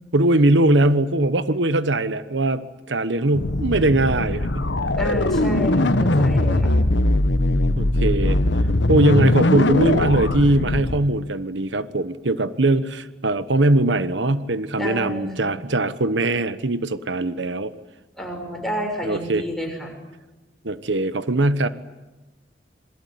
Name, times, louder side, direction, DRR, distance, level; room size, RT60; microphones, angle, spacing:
voice 1, 0.1-4.7 7.8-8.4 8.9-17.7 19.0-19.4 20.6-21.7, right 2 dB, 90° right, 13 dB, 1.2 m, -21 dB
sound 1, 3.3-11.0, left 1 dB, 90° left, 1.3 m, -20 dB
voice 2, 5.0-6.7 14.7-15.6 18.2-19.9, equal, ahead, 1 dB, 6.3 m, -30 dB
27.0 x 22.0 x 9.4 m, 1.1 s
head